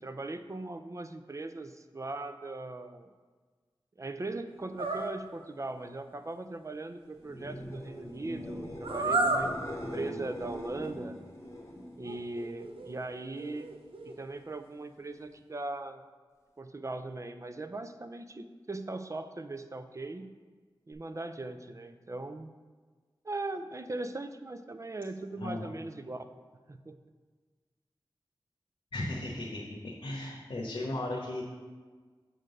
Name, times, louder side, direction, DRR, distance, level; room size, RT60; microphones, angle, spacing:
voice 1, 0.0-3.1 4.0-11.2 12.0-13.7 14.0-16.0 16.6-20.3 20.9-22.5 23.2-26.2 26.7-27.0, right 2 dB, 35° right, 9 dB, 0.5 m, -39 dB
sound 1, 4.8-5.1 8.8-9.5 10.8-10.9 12.0-12.9 13.4-14.2, right 2 dB, 90° right, 0.7 m, -31 dB
sound 2, 7.2-12.9 13.3-13.9 20.9-21.0, left 1 dB, 35° left, 1.0 m, -42 dB
voice 2, 28.9-31.4, left 1 dB, 75° left, -4 dB, 1.1 m, -36 dB
7.7 x 3.8 x 6.5 m, 1.4 s
wide cardioid pair, 75°, 9 cm